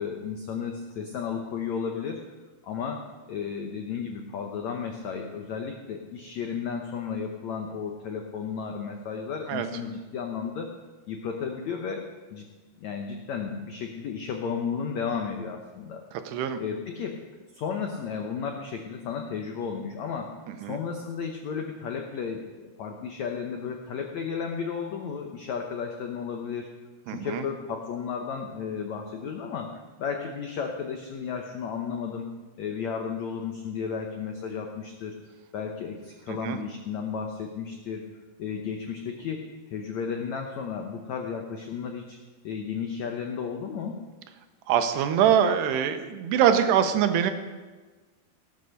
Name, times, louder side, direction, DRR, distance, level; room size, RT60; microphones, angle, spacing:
voice 1, 0.0-2.2 2.6-10.7 11.1-12.4 12.8-16.0 16.6-17.2 17.5-26.7 27.1-32.3 32.6-35.2 35.5-38.1 38.4-39.4 39.7-42.2 42.4-44.0, left 6 dB, 85° left, 3 dB, 1.5 m, -33 dB
voice 2, 16.1-16.6 20.5-20.8 27.1-27.5 36.3-36.6 44.7-47.3, right 9 dB, 90° right, 8 dB, 3.1 m, -24 dB
17.5 x 8.2 x 6.5 m, 1.3 s
omnidirectional pair, 4.7 m